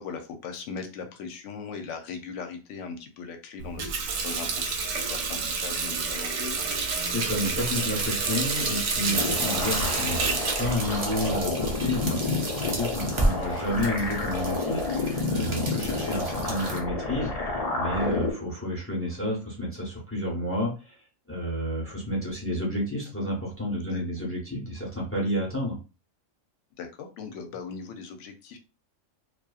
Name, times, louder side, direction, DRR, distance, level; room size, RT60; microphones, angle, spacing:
voice 1, 0.0-6.7 12.5-12.8 23.8-24.0 26.8-28.6, left 5 dB, 75° left, 6 dB, 0.9 m, -39 dB
Water tap faucet, 3.6-12.0, right 4 dB, 75° right, 1.0 m, -30 dB
sound 1, 6.7-16.8, right 2 dB, 55° right, 0.3 m, -33 dB
voice 2, 7.1-25.8, left 1 dB, 10° left, -3 dB, 0.8 m, -31 dB
sound 2, 9.1-18.3, left 3 dB, 55° left, 0.4 m, -30 dB
2.7 x 2.3 x 2.3 m, 0.32 s
omnidirectional pair, 1.3 m